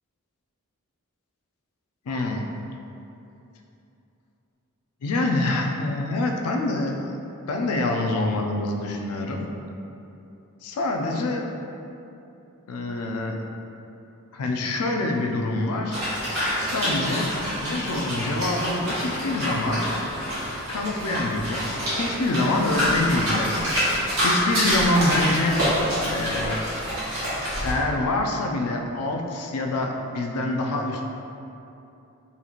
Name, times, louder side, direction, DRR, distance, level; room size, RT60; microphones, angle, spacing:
voice 1, 2.1-2.4 5.0-7.1 7.5-9.5 10.6-11.5 12.7-13.4 14.3-16.0 16.7-17.3 17.6-19.8 20.7-23.9 24.2-25.6 26.0-26.6 27.6-31.0, left 2 dB, 90° left, 2 dB, 0.4 m, -26 dB
sound 1, 15.9-27.7, equal, 60° right, 1.4 m, -27 dB
3.9 x 3.0 x 2.4 m, 2.8 s
head